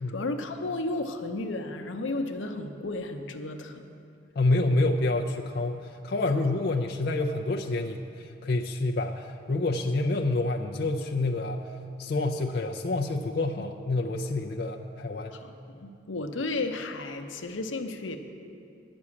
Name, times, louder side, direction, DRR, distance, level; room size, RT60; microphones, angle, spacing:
voice 1, 0.0-3.9 4.7-4.8 13.6-13.7 15.3-18.2, left 2 dB, 85° left, 6 dB, 0.7 m, -33 dB
voice 2, 4.4-11.6 12.0-15.4, left 2 dB, 55° left, 2 dB, 0.4 m, -28 dB
9.6 x 6.2 x 8.5 m, 2.6 s
head